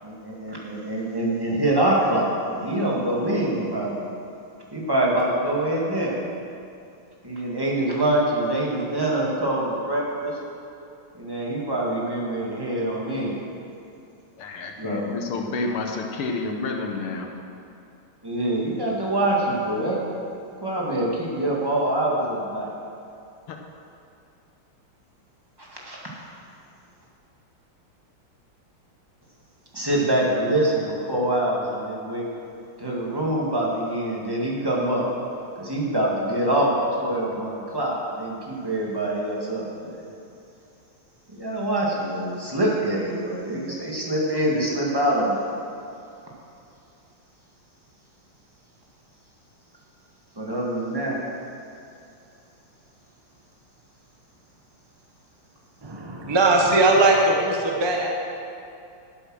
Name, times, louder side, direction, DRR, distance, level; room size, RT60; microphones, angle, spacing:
voice 1, 0.0-4.1 4.7-6.1 7.2-10.4 11.2-13.4 14.8-15.1 18.2-20.0 20.6-22.7 25.6-26.0 29.7-32.3 32.8-35.1 35.6-40.0 41.3-45.4 50.4-51.2, right 1 dB, 10° right, -4 dB, 1.8 m, -25 dB
voice 2, 14.4-17.3 23.5-23.6, left 3 dB, 90° left, 3 dB, 2.0 m, -29 dB
voice 3, 55.8-58.1, right 2 dB, 25° right, 0 dB, 0.5 m, -19 dB
12.5 x 8.3 x 6.3 m, 2.6 s
omnidirectional pair, 2.4 m